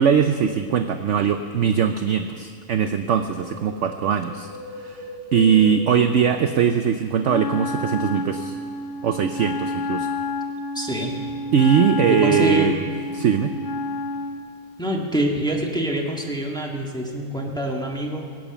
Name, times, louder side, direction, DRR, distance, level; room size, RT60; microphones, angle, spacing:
voice 1, 0.0-4.5 4.8-8.6 9.0-10.1 11.5-12.9 13.1-13.5, right 7 dB, 60° right, 8 dB, 0.8 m, -21 dB
Wind, 3.2-7.5 7.7-7.8, right 1 dB, 85° left, 3.8 m, -40 dB
Wind instrument woodwind instrument, 7.2-14.5, left 2 dB, 55° left, 1.0 m, -29 dB
voice 2, 10.7-11.3 12.0-12.8 14.8-18.3, right 1 dB, 5° left, -1 dB, 1.6 m, -25 dB
22.0 x 8.7 x 7.0 m, 2.1 s
omnidirectional pair, 1.7 m